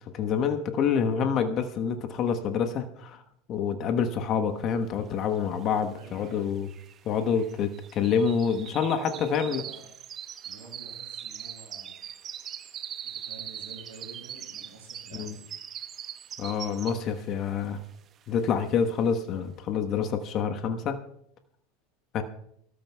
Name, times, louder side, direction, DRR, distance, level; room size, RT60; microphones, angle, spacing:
voice 1, 0.1-3.2 3.5-6.7 7.0-9.6 15.1-15.3 16.4-17.8 18.3-21.0 22.1-22.2, left 6 dB, 45° left, 6 dB, 1.2 m, -27 dB
sound 1, 5.5-5.6 5.8-17.2 17.6-18.0 18.4-18.5, right 9 dB, 40° right, 0.9 m, -41 dB
voice 2, 5.9-6.5 8.8-9.9 10.4-11.9 13.0-15.4, right 3 dB, 80° right, 0 dB, 7.0 m, -49 dB
24.5 x 13.5 x 2.3 m, 0.73 s
hypercardioid pair, 85°, 0 cm